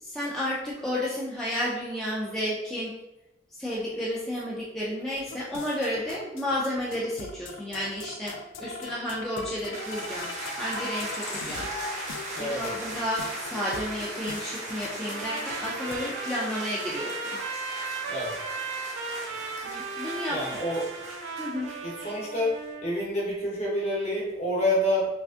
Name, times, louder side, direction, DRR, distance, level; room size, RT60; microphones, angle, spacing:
voice 1, 0.0-2.9 3.5-10.3 10.6-11.7 12.4-17.4 19.6-20.4 21.4-21.7, left 1 dB, 5° left, -7 dB, 0.4 m, -32 dB
sound 1, 5.1-16.0, left 4 dB, 90° left, 0.3 m, -42 dB
sound 2, 9.7-22.4, right 1 dB, 40° right, 0.9 m, -38 dB
voice 2, 12.3-12.7 18.1-18.3 20.3-20.9 21.8-22.5 22.8-25.1, left 1 dB, 35° left, -4 dB, 0.9 m, -28 dB
Trumpet, 15.0-22.9, right 4 dB, 75° right, 0.4 m, -37 dB
3.4 x 2.4 x 2.4 m, 0.91 s
head